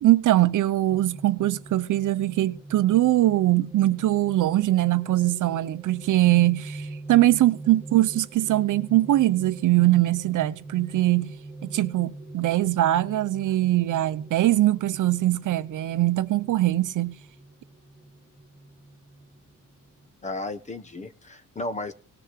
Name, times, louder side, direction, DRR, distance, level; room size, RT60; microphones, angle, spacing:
voice 1, 0.0-11.3 11.6-17.2, right 15 dB, 65° right, 0.9 m, -22 dB
sound 1, 0.9-20.1, right 2 dB, 5° right, 2.3 m, -43 dB
voice 2, 20.2-21.9, left 2 dB, 20° left, 1.1 m, -34 dB
18.5 x 6.7 x 7.5 m
cardioid pair, 170°, 33 cm